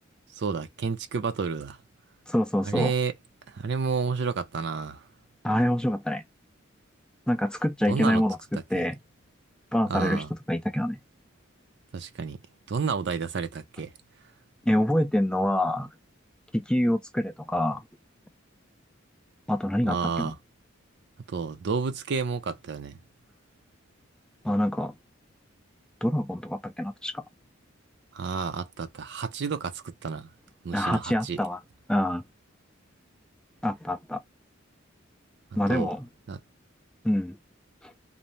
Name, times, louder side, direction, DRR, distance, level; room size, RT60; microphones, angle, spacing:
voice 1, 0.4-1.8 2.6-3.1 3.5-5.0 7.9-8.2 8.7-8.8 9.9-10.3 11.9-12.4 12.7-13.9 19.8-20.4 21.3-23.0 28.1-30.3 30.6-31.4 35.7-35.9 36.3-36.4, right 5 dB, 60° right, 0.5 m, -30 dB
voice 2, 2.3-2.9 5.4-6.2 7.3-9.0 9.7-11.0 14.7-15.9 16.5-17.8 19.5-20.3 24.4-24.9 26.0-27.2 30.7-31.6 31.9-32.2 33.6-34.2 35.6-36.1 37.0-37.4 37.8-37.9, left 1 dB, 5° left, 0.3 m, -26 dB
2.7 x 2.0 x 3.1 m
head